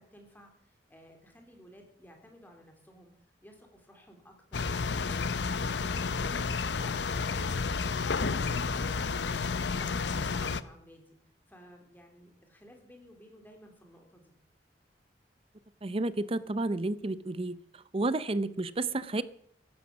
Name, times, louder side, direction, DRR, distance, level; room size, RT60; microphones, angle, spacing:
voice 1, 0.0-8.6 9.0-11.2 11.5-14.3, equal, 10° left, 3.3 m, -55 dB
sound 1, 4.5-10.6, left 4 dB, 80° left, 0.7 m, -31 dB
voice 2, 15.8-17.6 17.9-19.2, right 2 dB, 35° right, 0.6 m, -31 dB
16.0 x 11.5 x 6.1 m
head